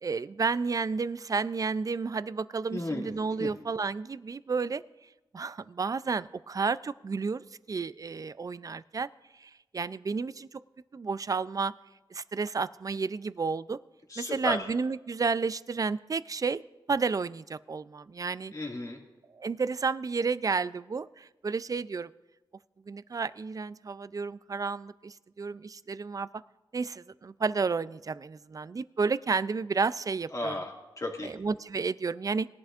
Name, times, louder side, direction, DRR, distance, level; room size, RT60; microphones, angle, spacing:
voice 1, 0.0-4.8 5.3-9.1 9.4-10.6 10.9-11.7 12.1-13.8 14.2-16.6 16.9-18.5 19.3-22.1 22.9-26.3 26.7-30.6 31.2-32.5, right 4 dB, 45° right, 16 dB, 0.4 m, -31 dB
voice 2, 2.7-3.1 3.4-3.5 14.1-14.6 18.5-19.0 30.3-31.3, left 2 dB, 40° left, 0 dB, 2.0 m, -34 dB
20.5 x 11.0 x 2.5 m, 1.1 s
wide cardioid pair, 90°, 9 cm